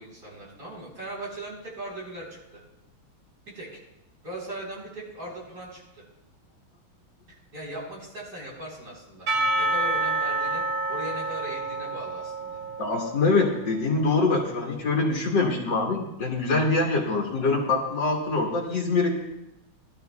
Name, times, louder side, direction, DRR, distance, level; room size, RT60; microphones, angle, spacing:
voice 1, 0.0-2.6 3.5-3.8 4.2-6.0 7.3-9.3 9.6-10.6 10.9-12.6, right 1 dB, 50° right, -4 dB, 4.6 m, -39 dB
Percussion / Church bell, 9.3-13.7, right 2 dB, 70° right, 3.8 m, -28 dB
voice 2, 12.8-19.1, left 3 dB, 60° left, -1 dB, 2.2 m, -24 dB
20.0 x 12.0 x 2.3 m, 0.87 s
omnidirectional pair, 2.3 m